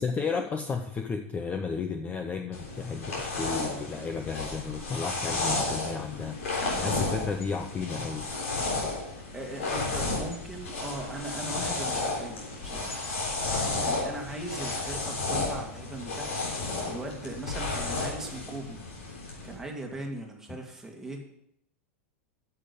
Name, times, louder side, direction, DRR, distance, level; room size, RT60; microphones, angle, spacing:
voice 1, 0.0-6.4 6.8-8.3 20.5-20.6, left 5 dB, 20° left, 6 dB, 0.7 m, -33 dB
sound 1, 2.5-19.5, left 3 dB, 90° left, 3.6 m, -32 dB
voice 2, 8.9-13.0 13.7-18.8 19.4-21.2, right 1 dB, 5° right, 0 dB, 2.1 m, -39 dB
8.8 x 7.0 x 6.9 m, 0.73 s
supercardioid pair, 130°, 7 cm